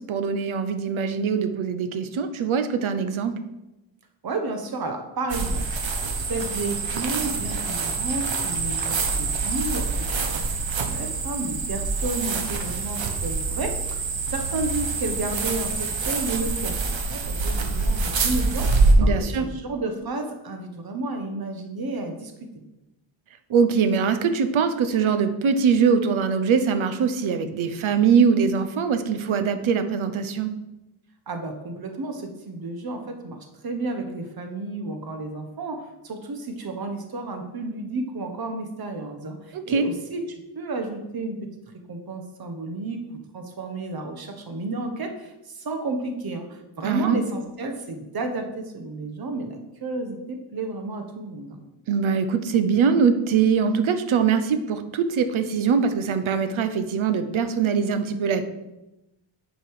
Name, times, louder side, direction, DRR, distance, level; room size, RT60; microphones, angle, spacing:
voice 1, 0.0-3.3 19.0-19.4 23.5-30.5 39.5-39.8 46.8-47.2 51.9-58.4, right 6 dB, 90° right, 9 dB, 0.9 m, -22 dB
voice 2, 4.2-5.7 6.3-10.4 10.8-18.7 19.0-22.3 31.3-41.4 41.9-43.0 43.3-51.6, right 2 dB, 50° right, 5 dB, 1.3 m, -32 dB
sound 1, 5.3-18.9, right 4 dB, 70° right, 1.3 m, -26 dB
9.8 x 5.3 x 4.8 m, 0.97 s
wide cardioid pair, 160°, 47 cm